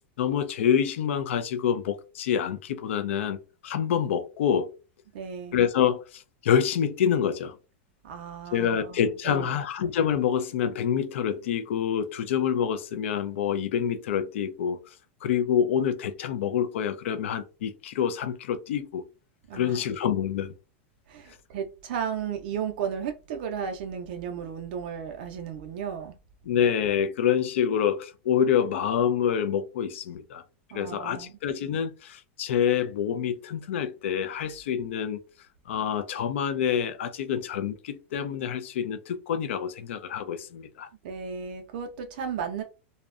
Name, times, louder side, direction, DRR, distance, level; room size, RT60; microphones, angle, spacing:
voice 1, 0.2-3.4 3.6-4.7 5.5-7.5 8.5-14.8 15.2-19.0 19.5-20.5 26.5-30.4 30.7-35.2 35.7-40.9, left 8 dB, 85° left, 0.4 m, -27 dB
voice 2, 5.1-5.6 8.0-9.5 19.5-19.8 21.1-26.1 30.7-31.4 41.0-42.6, right 7 dB, 50° right, 0.3 m, -34 dB
2.6 x 2.1 x 2.4 m
supercardioid pair, 175°, 7 cm